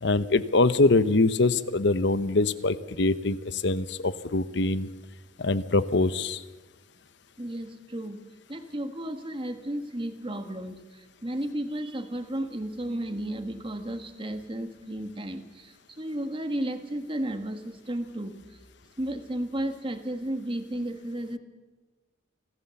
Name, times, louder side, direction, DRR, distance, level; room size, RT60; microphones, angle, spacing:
voice 1, 0.0-3.4 3.6-4.9 5.4-6.4, left 2 dB, 65° left, 14 dB, 0.9 m, -23 dB
voice 2, 7.4-8.2 8.5-18.4 19.0-21.4, right 1 dB, 30° right, 7 dB, 1.6 m, -33 dB
26.5 x 15.5 x 7.1 m, 1.3 s
head